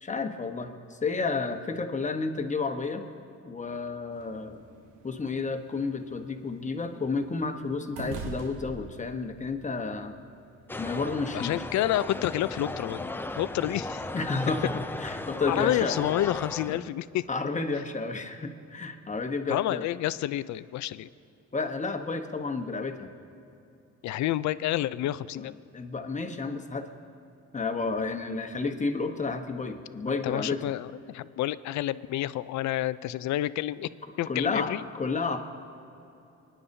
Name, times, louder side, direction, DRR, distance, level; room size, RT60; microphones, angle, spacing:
voice 1, 0.0-3.1 3.4-4.6 5.0-10.1 10.8-11.6 14.1-16.0 16.7-16.8 17.3-19.9 21.5-23.1 25.3-25.5 25.7-26.9 27.5-30.7 34.3-35.4, left 4 dB, 25° left, 5 dB, 1.1 m, -31 dB
sound 1, 4.1-10.8, right 4 dB, 90° right, 1.0 m, -45 dB
sound 2, 10.7-16.9, left 2 dB, 5° left, 0.4 m, -36 dB
voice 2, 11.3-14.0 15.5-17.2 19.5-21.1 24.0-25.5 30.1-33.9 34.2-34.8, left 14 dB, 70° left, 16 dB, 0.4 m, -29 dB
28.0 x 10.0 x 2.7 m, 2.8 s
cardioid pair, 90°, 30 cm